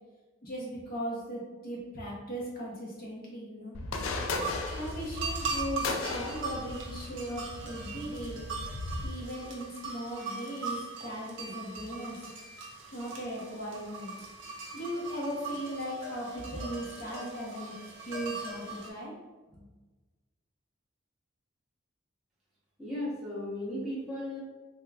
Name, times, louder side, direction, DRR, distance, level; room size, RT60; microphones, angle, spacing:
voice 1, 0.4-3.8 4.4-8.5 9.0-12.3 12.9-14.1 14.7-17.7 18.1-19.1 19.5-19.6, right 1 dB, 45° left, -5 dB, 0.8 m, -38 dB
sound 1, 3.7-9.1, left 3 dB, 85° left, 0.4 m, -36 dB
sound 2, 4.0-18.9, right 3 dB, 70° right, 0.6 m, -40 dB
voice 2, 22.8-24.4, left 1 dB, ahead, -10 dB, 0.8 m, -35 dB
3.4 x 2.9 x 2.3 m, 1.2 s
head